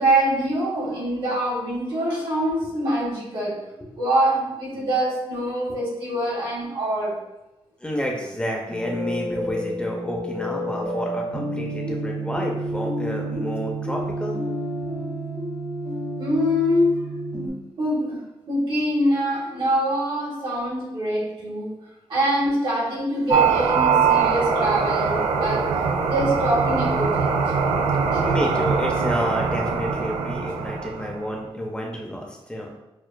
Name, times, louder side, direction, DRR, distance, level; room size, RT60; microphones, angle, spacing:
voice 1, 0.0-3.6 3.9-7.2 16.2-16.9 17.8-21.8 22.1-27.5 28.1-28.2, right 1 dB, 60° right, -4 dB, 1.4 m, -24 dB
voice 2, 7.8-14.4 14.9-15.0 28.2-32.7, equal, 10° left, -1 dB, 0.5 m, -30 dB
sound 1, 8.7-17.5, right 1 dB, 40° right, 1.2 m, -30 dB
sound 2, 23.3-31.3, right 5 dB, 85° right, 0.4 m, -22 dB
6.3 x 2.3 x 2.2 m, 1.0 s
wide cardioid pair, 150°, 10 cm